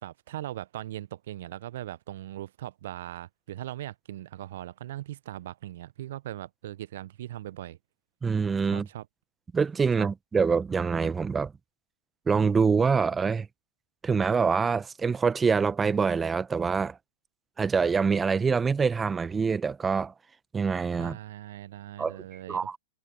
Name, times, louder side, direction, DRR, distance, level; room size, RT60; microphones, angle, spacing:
voice 1, 0.0-7.8 8.6-9.1 9.9-10.1 21.0-22.8, right 13 dB, 60° right, 1.1 m, -39 dB
voice 2, 8.2-8.9 9.5-11.5 12.3-13.5 14.0-17.0 17.6-20.1 20.5-21.2 22.0-22.8, right 5 dB, 15° right, 1.3 m, -25 dB
figure-of-eight pair, 105°, 0 cm